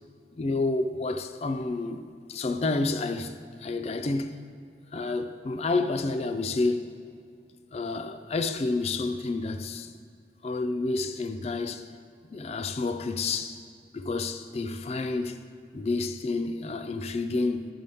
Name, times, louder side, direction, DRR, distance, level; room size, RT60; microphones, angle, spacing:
voice 1, 0.4-4.4 4.9-6.9 7.7-9.9 10.4-11.9 12.3-13.6 13.9-15.4 15.7-17.7, left 3 dB, 35° left, 0.4 m, -29 dB
13.5 x 5.4 x 3.5 m
head